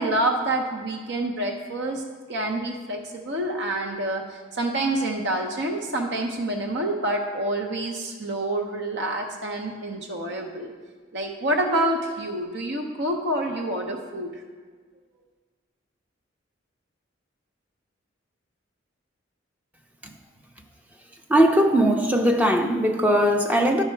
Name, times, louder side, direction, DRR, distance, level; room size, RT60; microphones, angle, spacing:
voice 1, 0.0-2.0 2.3-10.7 11.1-14.4, right 1 dB, 60° right, 0.8 m, -27 dB
voice 2, 21.3-23.8, equal, 10° right, 0.6 m, -20 dB
10.5 x 5.8 x 4.5 m
head